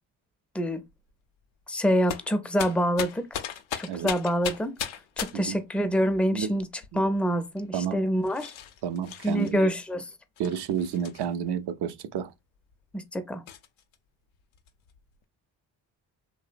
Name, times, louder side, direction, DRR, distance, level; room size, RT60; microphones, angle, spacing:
sound 1, 0.9-1.1 2.1-5.6 6.4-7.2 7.6-7.7 8.2-9.5 10.4-11.5 12.2-12.3 12.7-12.8 13.5-14.0 14.3-15.2, left 9 dB, 75° left, 0.5 m, -38 dB
voice 1, 1.7-3.4 3.8-4.8 5.2-6.7 6.9-8.5 9.2-10.0 12.9-13.4, equal, 5° left, 0.4 m, -26 dB
voice 2, 7.7-8.0 8.8-9.7 10.4-12.3, right 8 dB, 60° right, 0.5 m, -30 dB
2.7 x 2.0 x 2.4 m
supercardioid pair, 45°, 47 cm